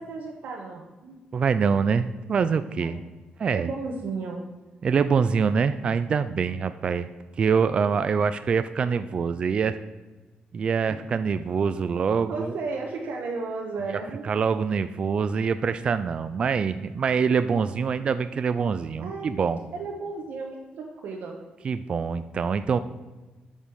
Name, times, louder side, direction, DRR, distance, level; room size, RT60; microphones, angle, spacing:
voice 1, 0.0-1.2 2.8-3.0 3.5-4.4 10.8-10.9 12.3-14.3 19.0-19.3 19.7-21.3, right 4 dB, 70° right, -1 dB, 1.2 m, -34 dB
voice 2, 1.3-3.0 3.4-3.7 4.8-7.1 7.4-9.8 10.5-12.5 14.2-19.6 21.6-22.8, right 6 dB, 35° right, 11 dB, 0.3 m, -25 dB
8.9 x 5.3 x 6.4 m, 1.2 s
wide cardioid pair, 170°, 3 cm